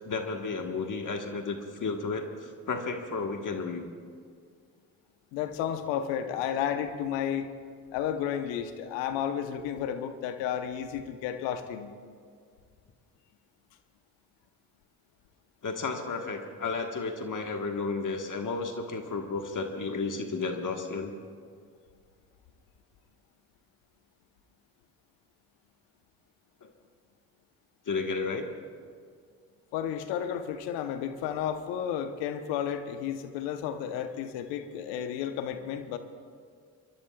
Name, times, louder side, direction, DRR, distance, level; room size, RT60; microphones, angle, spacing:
voice 1, 0.0-3.9 15.6-21.1 26.6-26.7 27.8-28.5, left 4 dB, 45° left, 4 dB, 1.5 m, -33 dB
voice 2, 5.3-7.5 7.9-11.9 29.7-36.0, left 9 dB, 80° left, 9 dB, 1.0 m, -32 dB
23.5 x 20.5 x 2.4 m, 2.1 s
hypercardioid pair, 45°, 42 cm